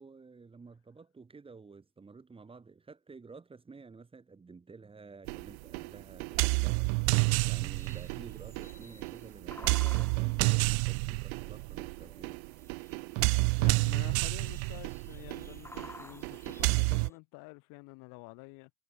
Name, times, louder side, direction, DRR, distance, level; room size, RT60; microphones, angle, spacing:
voice 1, 0.0-6.9 7.5-12.4, right 4 dB, 10° right, 2.9 m, -51 dB
sound 1, 5.3-17.1, right 40 dB or more, 30° right, 0.6 m, -30 dB
sound 2, 7.1-17.2, left 2 dB, 5° left, 3.4 m, -54 dB
voice 2, 13.6-18.7, left 29 dB, 40° left, 2.5 m, -49 dB
figure-of-eight pair, 100°, 47 cm